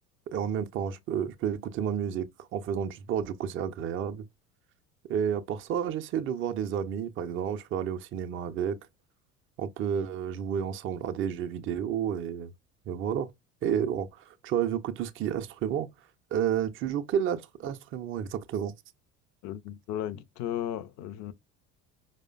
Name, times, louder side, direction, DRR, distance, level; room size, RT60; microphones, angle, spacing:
voice 1, 0.3-4.2 5.1-8.8 9.6-12.5 12.9-13.3 13.6-15.9 16.3-18.7, right 8 dB, 30° right, 0.5 m, -31 dB
voice 2, 19.4-21.3, left 11 dB, 45° left, 0.5 m, -35 dB
4.8 x 2.1 x 2.3 m
hypercardioid pair, 65°, 42 cm